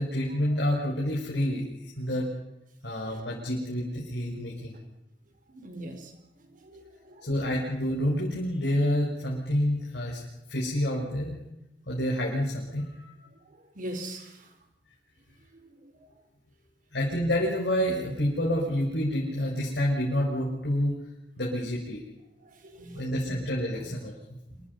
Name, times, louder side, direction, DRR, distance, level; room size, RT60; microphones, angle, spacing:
voice 1, 0.0-1.6 2.0-2.3 2.8-4.8 7.2-10.2 10.5-11.4 11.9-13.0 16.9-20.9 21.4-22.0 22.9-24.4, equal, 70° left, -4 dB, 5.9 m, -28 dB
voice 2, 5.5-6.1 6.6-7.4 13.7-14.5 15.5-16.1 22.4-23.4 23.8-23.9 24.5-24.6, right 1 dB, 50° right, 6 dB, 4.6 m, -42 dB
27.0 x 25.0 x 5.5 m, 0.91 s
head